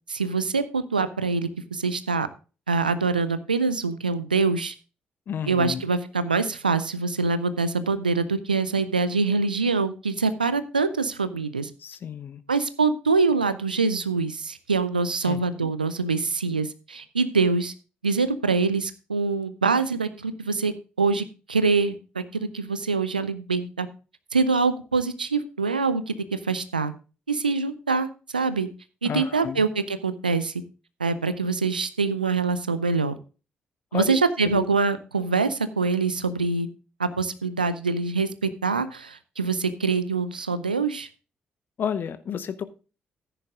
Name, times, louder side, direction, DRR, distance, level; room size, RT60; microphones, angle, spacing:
voice 1, 0.1-2.3 2.7-4.7 5.5-11.7 12.5-17.7 18.0-23.9 24.3-26.9 27.3-28.7 29.0-30.5 31.0-33.2 33.9-36.7 37.0-41.1, right 4 dB, 85° right, 13 dB, 0.5 m, -24 dB
voice 2, 5.3-5.8 11.8-12.4 15.2-15.7 29.0-29.7 33.9-34.2 34.4-34.7 41.8-42.6, left 8 dB, 50° left, 13 dB, 0.8 m, -31 dB
14.5 x 10.0 x 2.4 m, 0.34 s
figure-of-eight pair, 40°, 5 cm